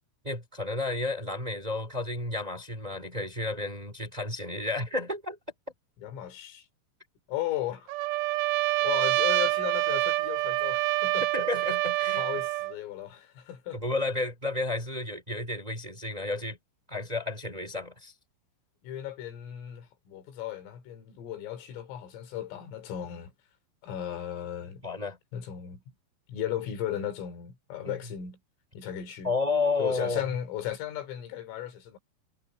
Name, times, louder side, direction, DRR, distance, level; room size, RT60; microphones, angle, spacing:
voice 1, 0.2-5.4 11.3-12.2 13.7-16.6 16.9-18.1 24.8-25.2 27.8-28.0 29.2-30.2, left 2 dB, 10° right, 3.2 m, -31 dB
voice 2, 6.0-6.7 7.3-8.0 8.4-8.6 8.8-11.2 12.2-13.8 18.8-23.3 23.8-24.8 25.3-25.8 26.3-28.4 28.8-29.3 29.8-32.0, left 11 dB, 85° left, 5.5 m, -36 dB
Trumpet, 7.9-12.7, right 19 dB, 80° right, 3.1 m, -27 dB
omnidirectional pair, 5.7 m